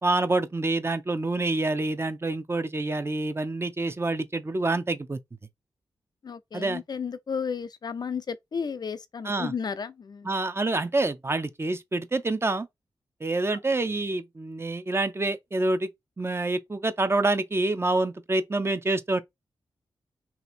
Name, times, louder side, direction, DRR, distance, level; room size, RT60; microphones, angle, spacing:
voice 1, 0.0-5.2 6.5-6.8 9.2-9.5 10.2-12.7 13.2-15.9 16.2-19.2, right 2 dB, 30° right, 0.6 m, -27 dB
voice 2, 6.2-10.3, left 6 dB, 50° left, 0.4 m, -33 dB
2.8 x 2.5 x 4.2 m
supercardioid pair, 45°, 9 cm